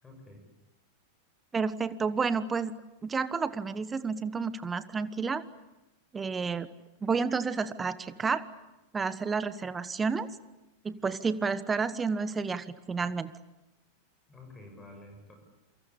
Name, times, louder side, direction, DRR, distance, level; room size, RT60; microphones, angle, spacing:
voice 1, 0.0-0.5 14.3-15.4, left 2 dB, 15° left, 4 dB, 7.3 m, -50 dB
voice 2, 1.5-2.7 3.0-5.4 6.1-6.7 7.0-8.5 8.9-10.3 10.8-13.3, right 5 dB, 15° right, 15 dB, 1.3 m, -30 dB
28.0 x 25.0 x 8.6 m, 0.97 s
figure-of-eight pair, 90°, 0 cm